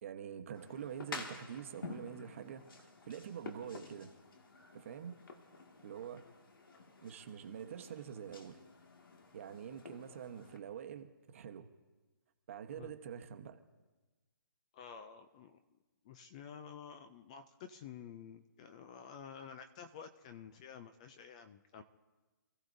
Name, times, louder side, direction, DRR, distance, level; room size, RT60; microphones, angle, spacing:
voice 1, 0.0-4.1 4.7-5.2 5.8-6.2 7.0-8.6 9.3-11.7 12.5-13.6, right 8 dB, 40° right, 7 dB, 1.1 m, -46 dB
sound 1, 0.5-10.6, left 3 dB, 90° left, 2.0 m, -51 dB
voice 2, 14.7-15.6 16.0-21.8, left 7 dB, 20° left, 9 dB, 0.4 m, -51 dB
27.5 x 14.5 x 2.7 m, 1.2 s
hypercardioid pair, 165°, 11 cm